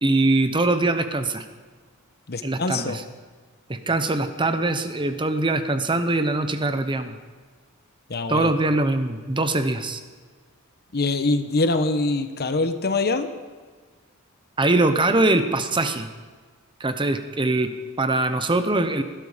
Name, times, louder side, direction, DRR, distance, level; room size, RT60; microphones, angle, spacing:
voice 1, 0.0-1.4 2.4-3.0 3.7-7.1 8.3-10.0 14.6-16.1 16.8-19.0, right 2 dB, 20° right, 9 dB, 0.9 m, -22 dB
voice 2, 2.3-3.0 8.1-8.5 10.9-13.3, left 3 dB, 45° left, 9 dB, 1.0 m, -24 dB
19.5 x 12.5 x 5.1 m, 1.5 s
head